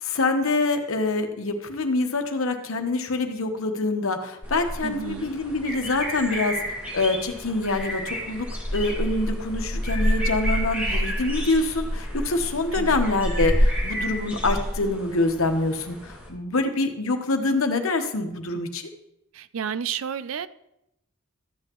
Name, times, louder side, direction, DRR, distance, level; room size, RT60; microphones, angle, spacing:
voice 1, 0.0-6.6 6.9-8.5 8.7-18.9, left 2 dB, 85° left, 1.1 m, -25 dB
sound 1, 4.4-16.3, equal, 5° right, 2.1 m, -28 dB
voice 2, 4.8-5.3 12.7-13.0 19.3-20.5, right 8 dB, 80° right, 0.4 m, -31 dB
13.0 x 8.0 x 3.0 m
head